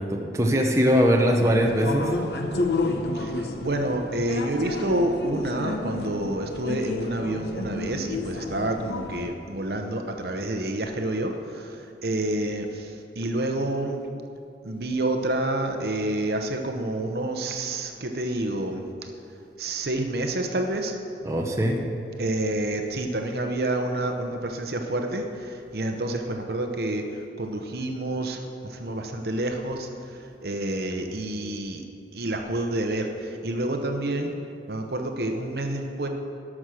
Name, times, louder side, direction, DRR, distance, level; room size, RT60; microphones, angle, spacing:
voice 1, 0.0-2.1 21.2-21.8, equal, 15° right, 0 dB, 0.8 m, -21 dB
sound 1, 1.3-9.3, left 2 dB, 65° left, 0.8 m, -31 dB
voice 2, 3.1-14.0 14.6-18.8 19.6-20.9 22.2-31.8 32.1-34.3 34.7-36.1, right 1 dB, 60° right, 4 dB, 0.8 m, -28 dB
12.5 x 6.1 x 6.4 m, 2.5 s
head